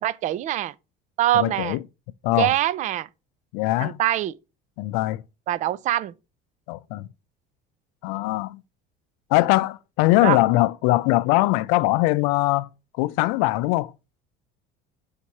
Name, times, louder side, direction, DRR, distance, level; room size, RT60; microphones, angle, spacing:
voice 1, 0.0-0.7 1.2-1.8 2.4-3.1 3.8-4.3 5.5-6.1 10.2-10.4, right 13 dB, 40° right, 0.4 m, -23 dB
voice 2, 1.3-1.8 2.2-2.5 3.5-4.0 4.8-5.2 6.7-7.1 8.0-8.6 9.3-12.7 13.0-13.9, left 18 dB, 85° left, 0.4 m, -21 dB
7.2 x 2.9 x 4.6 m
cardioid pair, 150°, 20 cm